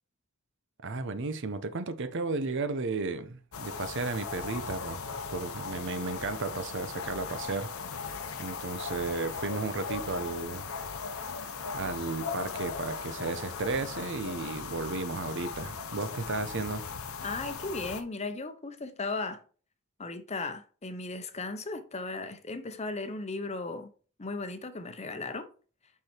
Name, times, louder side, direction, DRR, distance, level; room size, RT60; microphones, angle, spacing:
voice 1, 0.8-5.0 5.3-7.7 8.4-10.7 11.7-16.8, right 3 dB, 60° right, 0.8 m, -34 dB
sound 1, 3.5-18.0, left 5 dB, 80° left, 0.9 m, -38 dB
voice 2, 17.2-19.4 20.0-23.9 24.2-25.5, left 3 dB, 30° left, 0.9 m, -36 dB
6.0 x 5.8 x 4.4 m
head